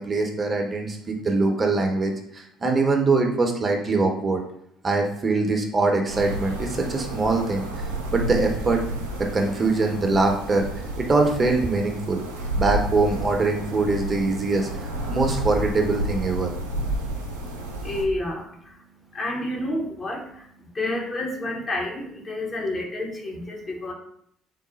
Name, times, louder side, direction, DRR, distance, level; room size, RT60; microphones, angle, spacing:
voice 1, 0.0-4.4 4.8-7.7 8.1-8.8 9.2-10.7 11.0-12.2 12.6-16.5, right 3 dB, 30° right, 3 dB, 0.7 m, -23 dB
sound 1, 6.1-18.0, right 1 dB, 85° right, 0.5 m, -31 dB
voice 2, 17.5-23.9, left 1 dB, 35° left, 1 dB, 0.9 m, -30 dB
4.0 x 2.0 x 3.9 m, 0.70 s
hypercardioid pair, 55°, 0 cm